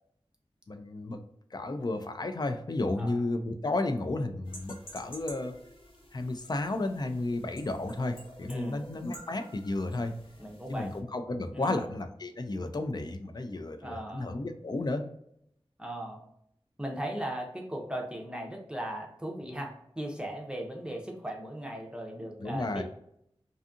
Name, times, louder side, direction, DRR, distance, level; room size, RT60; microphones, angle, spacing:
voice 1, 0.7-1.2 1.5-5.6 6.1-10.1 10.7-15.0 22.4-22.8, left 2 dB, 45° left, 7 dB, 0.4 m, -33 dB
sound 1, 4.4-11.0, equal, 60° left, 0.8 m, -50 dB
voice 2, 8.5-8.9 10.4-10.9 11.5-11.8 13.8-14.4 15.8-16.2 16.8-22.8, right 1 dB, 10° right, 0 dB, 0.6 m, -38 dB
2.6 x 2.4 x 2.4 m, 0.72 s
wide cardioid pair, 65°, 10 cm